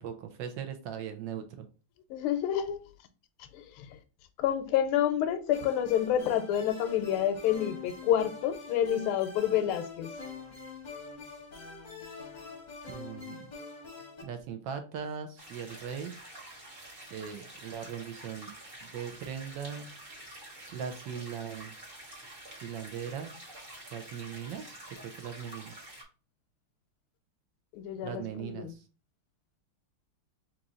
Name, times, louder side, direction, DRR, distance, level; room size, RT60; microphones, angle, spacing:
voice 1, 0.0-1.7 12.9-13.5 14.2-16.1 17.1-18.5 18.8-19.9 20.7-21.7 22.6-23.5 23.9-25.7 28.0-28.8, right 8 dB, 70° right, 1.2 m, -39 dB
voice 2, 2.1-2.8 3.4-4.0 4.4-10.1 27.7-28.7, left 10 dB, 85° left, 1.5 m, -29 dB
sound 1, 5.5-14.2, left 4 dB, 30° left, 0.8 m, -45 dB
sound 2, 15.4-26.0, right 1 dB, 30° right, 1.2 m, -48 dB
3.9 x 3.0 x 3.6 m
omnidirectional pair, 2.4 m